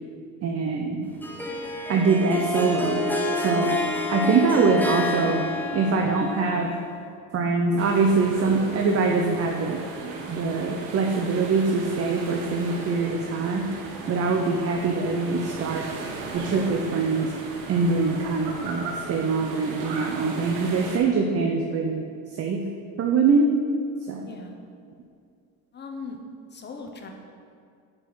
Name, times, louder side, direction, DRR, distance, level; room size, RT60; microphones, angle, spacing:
voice 1, 0.4-1.1 1.9-3.0 3.3-6.7 7.3-9.8 10.3-13.7 14.1-15.9 16.3-17.3 17.7-22.0 22.4-22.6 23.0-23.5 24.1-24.2, right 4 dB, 35° right, 2 dB, 0.7 m, -23 dB
Harp, 1.2-7.0, left 2 dB, 5° left, 0.8 m, -29 dB
sound 1, 7.8-21.0, right 3 dB, 90° right, 1.1 m, -36 dB
voice 2, 25.7-26.2 26.5-27.1, left 4 dB, 25° left, 3 dB, 1.0 m, -38 dB
5.4 x 5.4 x 6.1 m, 2.4 s
cardioid pair, 105°, 40 cm